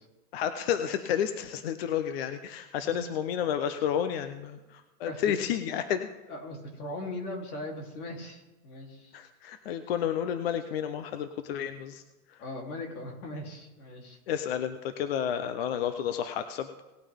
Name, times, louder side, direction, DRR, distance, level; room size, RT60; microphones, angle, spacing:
voice 1, 0.3-6.1 9.1-12.0 12.3-12.4 14.3-16.7, left 9 dB, 45° left, 10 dB, 0.6 m, -31 dB
voice 2, 5.0-5.4 6.3-9.2 12.4-14.2, left 1 dB, 75° left, 1 dB, 3.3 m, -39 dB
18.5 x 8.8 x 3.5 m, 1.1 s
supercardioid pair, 170°, 44 cm